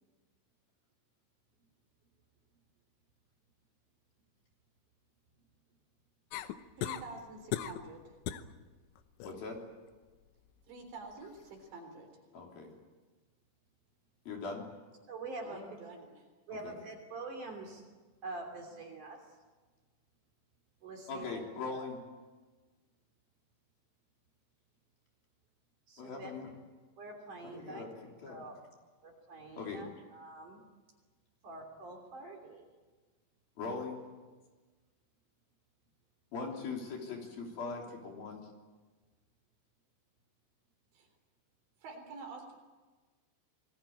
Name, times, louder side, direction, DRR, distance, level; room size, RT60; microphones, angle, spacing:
sound 1, 6.3-7.1 7.5-7.9 8.3-8.5 9.0-9.4 11.2-11.3, left 12 dB, 75° left, 3.2 m, -37 dB
voice 1, 6.8-8.0 10.7-12.1 15.4-16.2 40.9-41.1 41.8-42.6, right 3 dB, 65° right, 4 dB, 6.0 m, -48 dB
voice 2, 9.2-9.6 12.3-12.7 14.3-14.7 16.6-16.7 21.1-22.0 26.0-26.5 27.4-27.9 28.2-28.4 29.6-29.8 33.6-34.0 36.3-38.5, left 4 dB, 50° left, 1 dB, 4.9 m, -40 dB
voice 3, 15.1-15.6 16.5-17.9 18.2-19.2 20.8-21.4 21.7-21.9 25.9-26.3 27.0-27.8 28.3-28.5 29.0-30.6 31.4-32.7, right 2 dB, 45° right, 2 dB, 4.0 m, -45 dB
27.0 x 20.5 x 8.8 m, 1.3 s
omnidirectional pair, 5.7 m